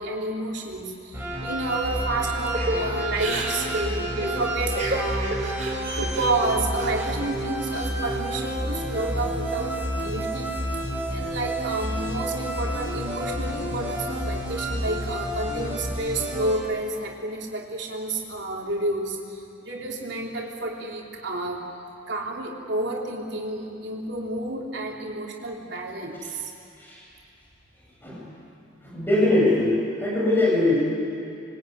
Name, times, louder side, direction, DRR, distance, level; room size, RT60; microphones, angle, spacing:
voice 1, 0.0-5.4 6.0-10.5 11.1-21.7 22.1-26.5, right 2 dB, 55° right, -1 dB, 3.8 m, -30 dB
sound 1, 1.1-16.6, right 1 dB, 10° right, 5.5 m, -30 dB
Crying sobbing / Breathing, 2.5-7.1 7.5-8.5 8.9-9.6, right 1 dB, 40° right, 4.2 m, -32 dB
voice 2, 28.8-29.7 30.0-30.8, left 2 dB, 10° left, -6 dB, 7.8 m, -21 dB
26.5 x 23.0 x 9.4 m, 2.6 s
head